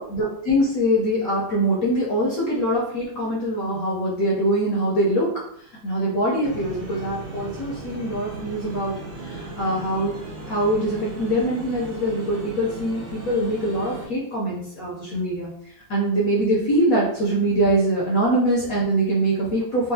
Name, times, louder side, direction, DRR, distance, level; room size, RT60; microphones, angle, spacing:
voice 1, 0.0-8.9 9.2-10.2 10.5-19.9, right 1 dB, 60° left, -5 dB, 0.9 m, -23 dB
sound 1, 6.4-14.1, right 2 dB, 75° right, 1.6 m, -36 dB
3.8 x 2.3 x 2.7 m, 0.73 s
omnidirectional pair, 2.1 m